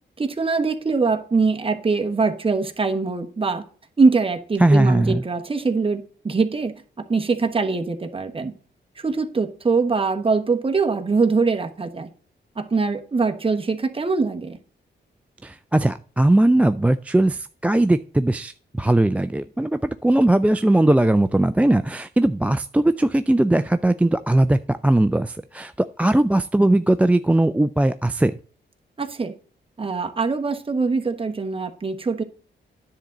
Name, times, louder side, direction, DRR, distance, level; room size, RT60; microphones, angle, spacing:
voice 1, 0.2-3.6 4.0-8.5 9.0-12.1 12.6-14.6 29.0-29.3 29.8-32.2, right 4 dB, 30° right, 1.2 m, -23 dB
voice 2, 4.6-5.2 15.4-18.5 18.8-25.7 26.0-28.3, right 1 dB, 5° right, 0.3 m, -19 dB
10.0 x 3.8 x 7.2 m
cardioid pair, 90°, 19 cm